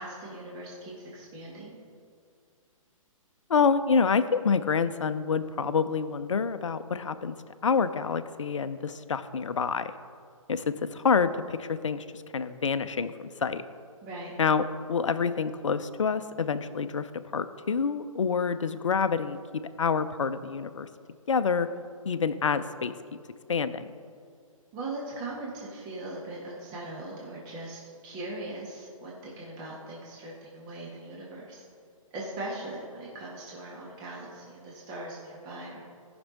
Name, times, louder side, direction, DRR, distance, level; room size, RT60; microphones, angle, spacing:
voice 1, 0.0-1.7 14.0-14.3 24.7-31.6 32.1-35.8, right 2 dB, 20° right, -5 dB, 1.9 m, -40 dB
voice 2, 3.5-7.4 7.6-9.9 10.5-12.1 12.3-13.6 14.4-14.6 14.9-17.1 17.3-19.4 19.8-20.9 21.3-21.7 22.0-22.9 23.5-23.9, left 5 dB, 60° left, 12 dB, 0.6 m, -27 dB
18.0 x 6.1 x 4.1 m, 2.3 s
figure-of-eight pair, 125°, 18 cm